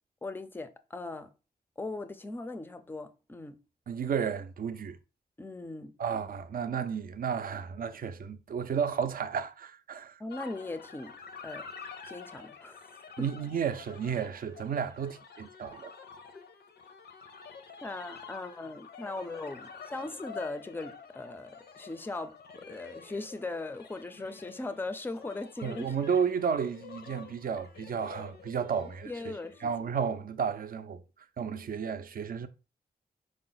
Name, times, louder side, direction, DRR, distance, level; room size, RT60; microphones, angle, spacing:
voice 1, 0.2-1.3 1.8-3.6 5.4-5.9 10.2-11.2 11.4-11.7 12.1-12.8 13.2-13.3 17.8-25.9 29.1-29.7, left 2 dB, 15° left, 0.4 m, -39 dB
voice 2, 3.9-5.0 6.0-10.2 13.2-15.9 25.6-29.3 29.6-31.0 31.4-32.5, right 7 dB, 60° right, 0.4 m, -32 dB
sound 1, 10.3-29.8, left 5 dB, 85° left, 0.6 m, -49 dB
4.8 x 2.0 x 3.8 m
wide cardioid pair, 120°, 17 cm